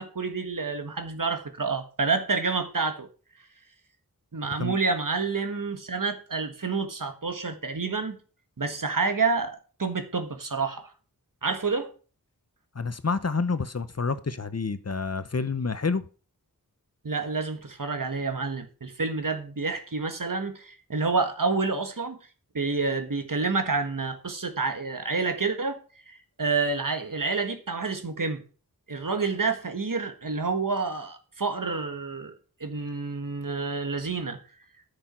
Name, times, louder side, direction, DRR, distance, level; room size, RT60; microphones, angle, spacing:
voice 1, 0.0-3.1 4.3-8.2 8.6-10.9 11.4-11.9 17.0-22.2 22.5-25.8 26.1-28.4 28.9-32.3 32.6-34.4, right 4 dB, 60° right, 1.5 m, -28 dB
voice 2, 12.7-16.1, left 4 dB, 45° left, 0.8 m, -28 dB
10.0 x 6.8 x 4.4 m
wide cardioid pair, 40°, 36 cm